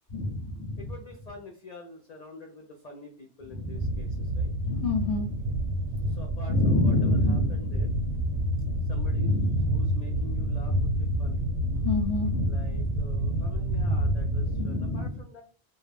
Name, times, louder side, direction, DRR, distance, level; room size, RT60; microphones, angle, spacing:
voice 1, 0.1-0.9 3.5-4.2 4.6-5.4 6.5-8.0 9.1-9.6 11.7-12.7 14.5-15.1, left 2 dB, 35° left, -3 dB, 0.7 m, -28 dB
voice 2, 0.8-4.5 6.1-8.0 8.8-9.4 9.7-11.4 12.5-15.4, left 2 dB, 65° left, 2 dB, 0.4 m, -46 dB
sound 1, 3.7-14.6, equal, 90° right, 0.9 m, -28 dB
2.2 x 2.1 x 3.4 m, 0.39 s
omnidirectional pair, 1.2 m